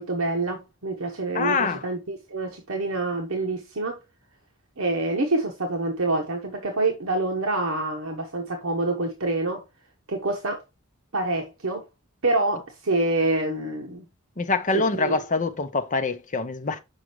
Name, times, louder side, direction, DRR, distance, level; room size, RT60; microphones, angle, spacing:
voice 1, 0.0-4.0 4.8-9.6 10.1-10.6 11.1-11.8 12.2-14.0 14.7-15.2, right 2 dB, 75° right, 1.1 m, -26 dB
voice 2, 1.3-1.8 14.4-16.8, left 3 dB, 40° left, 0.8 m, -25 dB
6.2 x 5.3 x 3.1 m
head